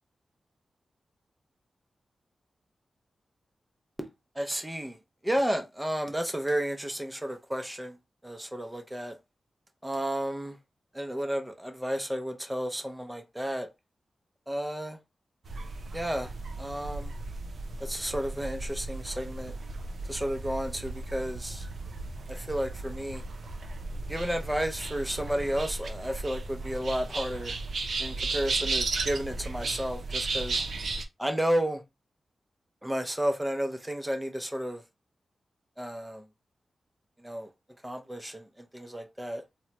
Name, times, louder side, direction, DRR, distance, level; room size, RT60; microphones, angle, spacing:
voice 1, 4.4-5.0 5.2-8.0 8.2-9.2 9.8-10.6 10.9-13.7 14.5-15.0 15.9-17.1 17.8-19.5 20.1-21.7 22.3-23.2 24.1-27.6 28.0-30.6 31.2-31.8 32.8-34.8 35.8-36.2 37.2-37.5 37.8-39.4, equal, 10° right, 0.5 m, -32 dB
sound 1, 15.5-31.1, right 3 dB, 75° right, 0.4 m, -35 dB
2.9 x 2.1 x 2.8 m
cardioid pair, 75°, 0 cm